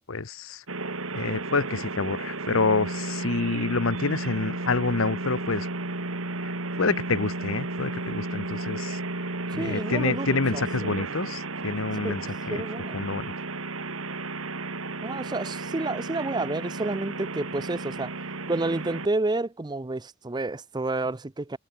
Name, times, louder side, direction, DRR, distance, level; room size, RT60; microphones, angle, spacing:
voice 1, 0.1-0.6 1.1-5.7 6.4-6.5 6.8-12.6 12.9-13.3, left 3 dB, 80° left, 1.1 m, -28 dB
sound 1, 0.7-19.1, right 2 dB, 90° right, 3.2 m, -33 dB
voice 2, 9.6-11.1 12.0-12.2 12.5-13.0 15.0-18.1 18.5-21.6, right 2 dB, 20° right, 0.5 m, -30 dB
head